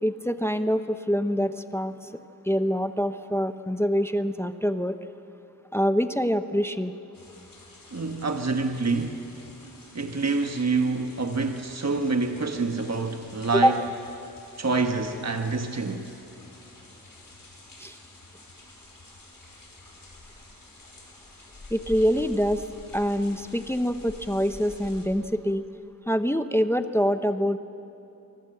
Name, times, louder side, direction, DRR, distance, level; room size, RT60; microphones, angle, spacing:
voice 1, 0.0-1.9 2.5-5.0 5.7-6.9 13.5-13.7 17.8-17.9 21.7-22.6 22.9-25.6 26.1-27.6, equal, 5° left, 10 dB, 0.8 m, -25 dB
sound 1, 7.1-25.0, left 2 dB, 70° left, 5.1 m, -48 dB
voice 2, 7.9-9.2 9.9-13.8 14.6-16.1, right 3 dB, 50° right, 5 dB, 1.3 m, -27 dB
24.5 x 24.0 x 7.8 m, 2.9 s
wide cardioid pair, 70°, 35 cm